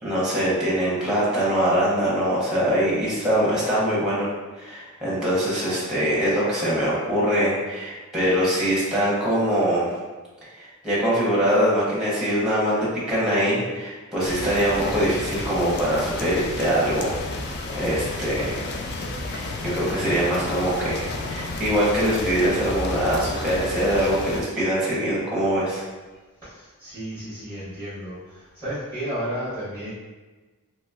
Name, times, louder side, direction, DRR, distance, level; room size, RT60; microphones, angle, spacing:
voice 1, 0.0-4.3 4.6-9.9 10.6-17.5 17.7-18.6 19.3-25.8, equal, 5° right, -8 dB, 0.8 m, -23 dB
sound 1, 14.2-24.4, left 2 dB, 50° left, 0.3 m, -32 dB
voice 2, 26.4-29.9, equal, 10° left, -14 dB, 1.2 m, -33 dB
2.9 x 2.9 x 2.3 m, 1.2 s
head